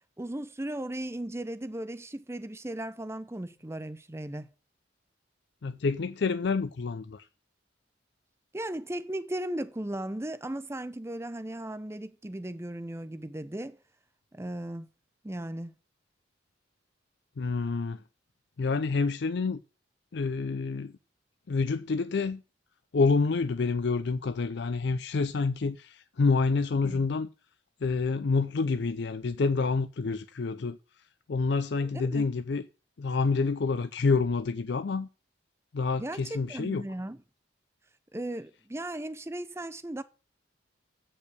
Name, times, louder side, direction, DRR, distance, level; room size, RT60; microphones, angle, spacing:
voice 1, 0.2-4.5 8.5-13.8 14.3-14.9 15.2-15.7 26.8-27.1 31.8-32.3 36.0-37.2 38.1-40.0, right 1 dB, 15° right, 0.6 m, -36 dB
voice 2, 5.6-7.3 17.4-18.0 18.6-19.6 20.1-20.9 21.5-22.4 22.9-27.3 27.8-30.8 31.3-32.6 33.0-35.1 35.7-36.8, left 4 dB, 60° left, 0.4 m, -28 dB
8.6 x 5.5 x 8.0 m
head